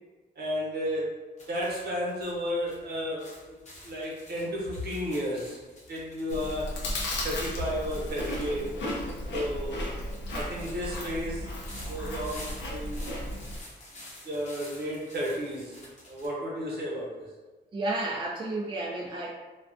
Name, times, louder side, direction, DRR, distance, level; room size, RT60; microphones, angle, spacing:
voice 1, 0.4-3.5 3.8-5.6 5.9-6.8 7.2-8.7 9.3-9.8 10.3-11.5 11.9-13.1 13.9-17.3, equal, 60° right, -4 dB, 0.8 m, -33 dB
sound 1, 1.4-16.3, left 1 dB, 40° left, 0.8 m, -50 dB
Chewing mastication, 6.3-13.6, left 1 dB, 80° left, 0.5 m, -34 dB
voice 2, 17.7-19.3, right 2 dB, 25° right, -3 dB, 0.3 m, -31 dB
2.3 x 2.2 x 2.4 m, 1.2 s
cardioid pair, 100°, 18 cm